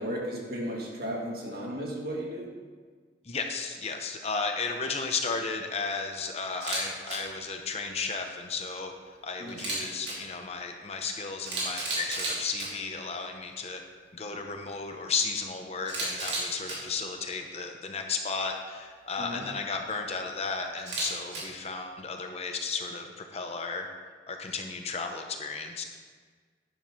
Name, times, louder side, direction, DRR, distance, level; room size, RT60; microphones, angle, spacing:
voice 1, 0.0-2.5 9.4-9.7 19.2-19.5, equal, 55° right, -2 dB, 2.0 m, -35 dB
voice 2, 3.2-13.8 14.1-23.9 24.3-25.8, left 4 dB, 35° left, 4 dB, 0.8 m, -34 dB
Camera, 6.5-6.8 7.1-7.2 9.5-10.1 11.1-11.2 11.4-12.7 15.9-16.8 20.8-21.4, right 2 dB, 75° right, 2.8 m, -32 dB
10.0 x 5.3 x 6.0 m, 1.5 s
head